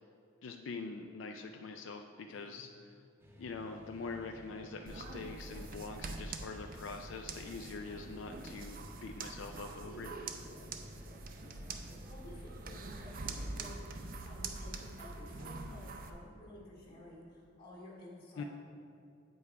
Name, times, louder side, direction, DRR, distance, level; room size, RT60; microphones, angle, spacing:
voice 1, 0.4-3.0 3.4-10.1 18.4-18.5, left 4 dB, 70° left, 5 dB, 0.4 m, -44 dB
voice 2, 2.3-2.6 9.9-10.2 10.5-18.4, left 1 dB, 55° left, -4 dB, 1.7 m, -53 dB
sound 1, 3.2-15.5, equal, 15° right, 0.9 m, -55 dB
sound 2, 4.9-16.1, right 3 dB, 45° right, 0.5 m, -45 dB
8.1 x 5.4 x 4.7 m, 2.5 s
head